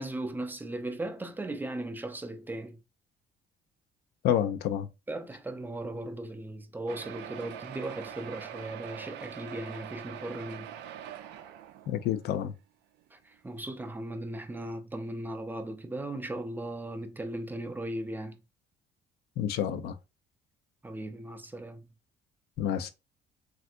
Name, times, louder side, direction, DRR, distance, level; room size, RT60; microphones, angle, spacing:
voice 1, 0.0-2.8 5.1-10.8 13.1-18.4 20.8-21.9, right 1 dB, 10° right, 0.5 m, -37 dB
voice 2, 4.2-4.9 11.9-12.5 19.4-20.0 22.6-22.9, left 10 dB, 75° left, 0.5 m, -29 dB
sound 1, 6.9-12.3 13.0-13.1 13.3-13.4 13.8-13.9, right 10 dB, 90° right, 0.4 m, -43 dB
3.3 x 2.5 x 2.6 m
cardioid pair, 110°, 17 cm